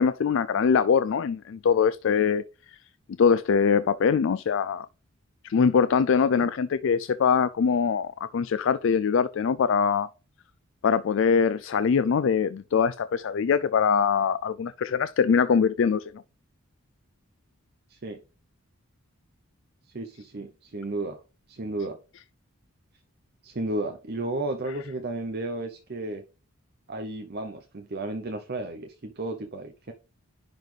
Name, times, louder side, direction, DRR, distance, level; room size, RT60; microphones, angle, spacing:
voice 1, 0.0-2.8 3.2-4.9 5.4-10.1 10.8-16.1, left 6 dB, 60° left, 0.3 m, -23 dB
voice 2, 17.9-18.2 19.9-21.2 21.5-22.0 23.4-26.2 26.9-29.9, right 2 dB, 45° right, 0.7 m, -33 dB
10.5 x 4.1 x 3.3 m
head